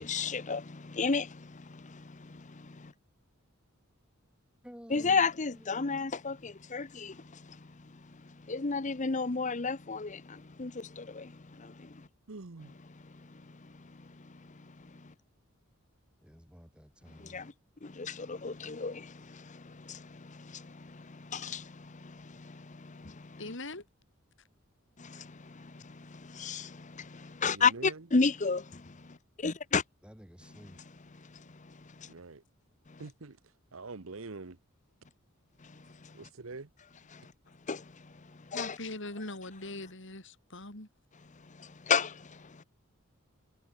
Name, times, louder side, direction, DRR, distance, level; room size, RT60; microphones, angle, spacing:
voice 1, 0.0-2.9 4.9-7.6 7.8-7.9 8.2-12.1 12.9-15.1 17.2-17.5 17.8-23.4 25.0-29.8 31.2-32.1 32.9-33.0 35.6-36.2 37.1-37.3 37.7-38.1 38.5-38.8 41.5-42.6, left 5 dB, 35° left, 0.9 m, -34 dB
voice 2, 4.6-5.2 5.5-6.5 16.2-17.5 30.0-30.8, equal, 5° right, 7.6 m, -52 dB
voice 3, 12.3-12.7 27.5-28.0 32.1-32.4 33.0-33.4 33.7-34.6 36.1-36.7, right 3 dB, 75° right, 1.1 m, -44 dB
voice 4, 23.4-23.8 38.5-40.9, left 2 dB, 60° left, 5.0 m, -41 dB
head